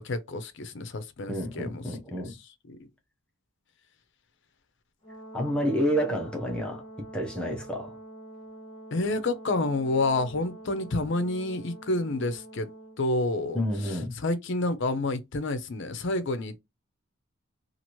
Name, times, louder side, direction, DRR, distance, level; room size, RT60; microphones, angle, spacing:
voice 1, 0.0-1.8 2.7-2.8 8.9-12.7 13.0-13.6 14.2-16.6, left 2 dB, 55° left, 0.5 m, -29 dB
voice 2, 1.3-2.3 5.3-6.8 7.1-8.0 13.5-14.1, equal, 5° left, 0.6 m, -29 dB
Brass instrument, 5.0-13.0, right 1 dB, 30° left, 0.9 m, -46 dB
2.9 x 2.5 x 3.0 m
head